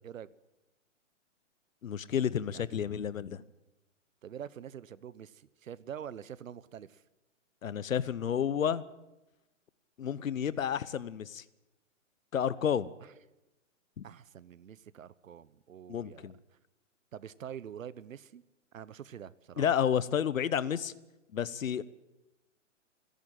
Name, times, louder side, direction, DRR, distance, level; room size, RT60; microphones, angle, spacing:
voice 1, 1.8-3.4 7.6-8.8 10.0-11.4 12.3-12.9 14.0-14.1 15.9-16.3 19.6-20.9 21.3-21.8, left 8 dB, 85° left, 18 dB, 1.1 m, -31 dB
voice 2, 4.2-7.0 13.0-13.1 14.0-16.3 17.1-18.4 18.7-19.7, right 9 dB, 80° right, 19 dB, 1.0 m, -45 dB
28.0 x 10.5 x 9.1 m, 1.0 s
hypercardioid pair, 135°, 39 cm